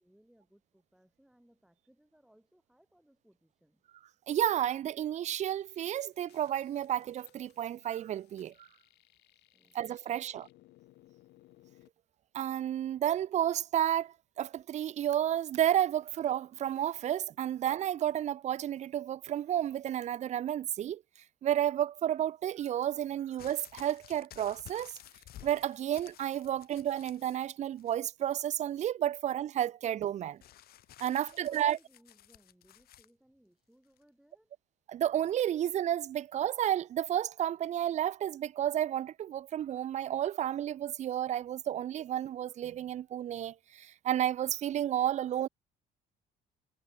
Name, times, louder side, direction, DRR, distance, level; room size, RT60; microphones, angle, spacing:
voice 1, 0.0-3.8 9.5-9.8 10.1-10.5 31.0-34.5, equal, 5° right, 4.1 m, -65 dB
voice 2, 4.3-8.7 9.7-10.5 12.3-21.0 21.4-24.9 25.4-30.4 31.0-31.8 34.9-45.5, right 11 dB, 45° right, 0.4 m, -31 dB
sound 1, 5.3-11.9, left 17 dB, 80° left, 4.5 m, -64 dB
sound 2, 23.4-27.5 27.8-28.4 30.4-33.1 34.0-34.1, left 13 dB, 65° left, 1.4 m, -54 dB
cardioid pair, 110°, 17 cm